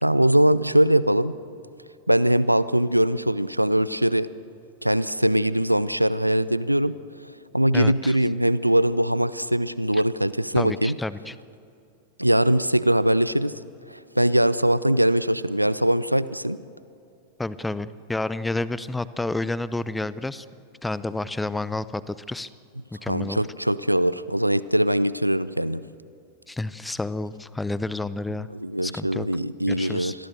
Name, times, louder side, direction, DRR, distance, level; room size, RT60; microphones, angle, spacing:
voice 1, 0.0-1.3 2.1-4.3 4.8-6.9 7.5-11.0 12.2-13.5 13.9-16.6 23.1-25.8 28.5-30.1, right 1 dB, 90° right, 17 dB, 0.5 m, -21 dB
voice 2, 7.7-8.2 9.9-10.0 10.5-11.3 17.4-20.5 20.8-22.5 23.0-23.4 26.5-28.5 28.8-29.3 29.7-30.1, left 2 dB, 5° left, 17 dB, 0.7 m, -30 dB
27.5 x 21.0 x 6.8 m, 2.7 s
figure-of-eight pair, 90°, 0 cm